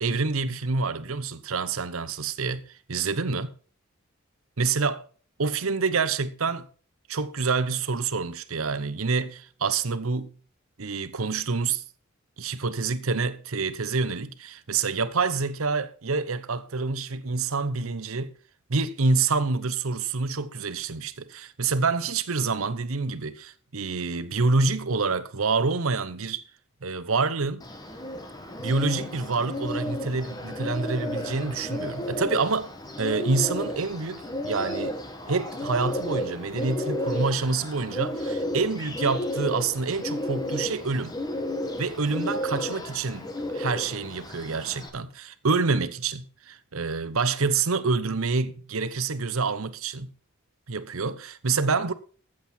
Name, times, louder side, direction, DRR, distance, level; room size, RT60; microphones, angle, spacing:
voice 1, 0.0-2.6 2.9-3.5 4.6-5.0 5.4-6.7 7.1-10.3 10.8-11.8 12.4-18.3 18.7-26.4 26.8-27.6 28.6-32.7 33.0-35.0 35.3-41.1 41.8-50.1 50.7-51.9, right 4 dB, 80° right, 0.9 m, -27 dB
Bird, 27.6-44.9, left 1 dB, 20° left, 1.3 m, -33 dB
14.5 x 7.5 x 4.4 m
head